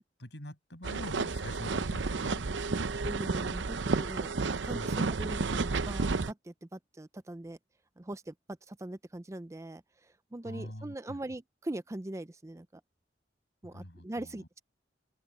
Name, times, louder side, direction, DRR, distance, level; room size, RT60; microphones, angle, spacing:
voice 1, 0.2-3.1 4.7-5.0 10.4-11.2 13.6-14.5, equal, 70° left, 6.2 m, -45 dB
sound 1, 0.8-6.3, right 4 dB, 90° right, 0.7 m, -31 dB
voice 2, 3.0-7.6 8.0-8.3 8.7-12.8 13.6-14.6, right 1 dB, 15° right, 0.5 m, -41 dB
open air
head